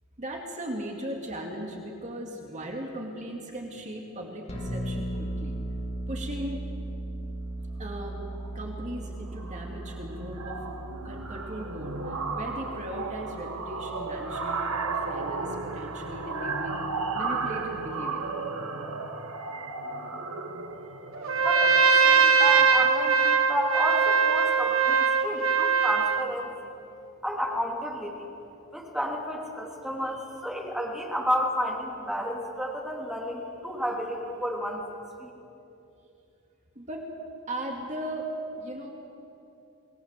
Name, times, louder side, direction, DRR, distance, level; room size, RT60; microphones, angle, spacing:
voice 1, 0.2-5.6 6.1-6.6 7.8-8.2 8.5-10.6 11.0-16.8 17.1-18.3 36.7-37.1 37.5-38.9, right 1 dB, 35° right, 1 dB, 2.6 m, -37 dB
sound 1, 4.5-17.9, right 1 dB, 30° left, 3.6 m, -38 dB
sound 2, 8.2-8.5 8.8-9.0 9.3-24.2, right 4 dB, 85° right, 1.8 m, -35 dB
Trumpet, 21.2-26.3, right 5 dB, 65° right, 1.8 m, -21 dB
voice 2, 21.4-26.5 27.2-28.1 28.7-34.8 35.2-35.3, equal, 5° right, -1 dB, 3.2 m, -31 dB
28.0 x 19.5 x 7.7 m, 2.8 s
head